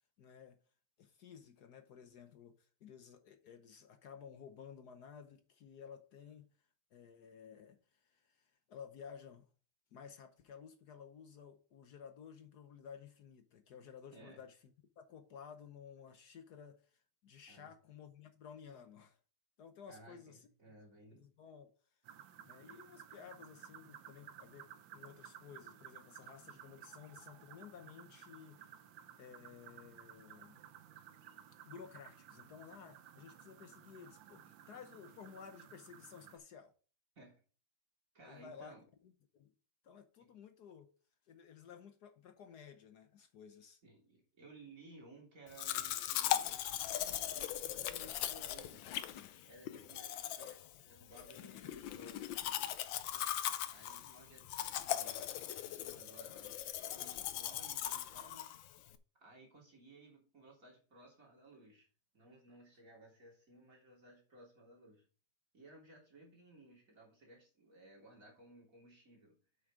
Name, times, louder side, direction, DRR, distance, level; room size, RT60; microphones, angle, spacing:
voice 1, 0.2-0.6 1.0-6.5 6.9-9.5 9.9-19.2 19.6-20.5 21.1-21.7 22.1-22.2 22.4-28.8 29.2-30.6 31.7-36.7 38.2-38.7 39.0-39.5 39.8-40.9 41.3-43.8, left 7 dB, 65° left, 1.3 m, -55 dB
voice 2, 19.9-21.3 37.2-37.4 38.1-38.9 40.2-40.3 43.8-46.8 47.3-48.9 49.5-52.2 53.7-56.7 56.9-58.5 59.2-61.9 62.1-65.0 65.5-69.4, right 2 dB, 45° right, 3.6 m, -59 dB
sound 1, 22.0-36.4, right 10 dB, 85° right, 1.6 m, -56 dB
Domestic sounds home sounds, 45.6-59.0, left 11 dB, 90° left, 1.5 m, -39 dB
8.0 x 6.3 x 5.0 m
omnidirectional pair, 2.0 m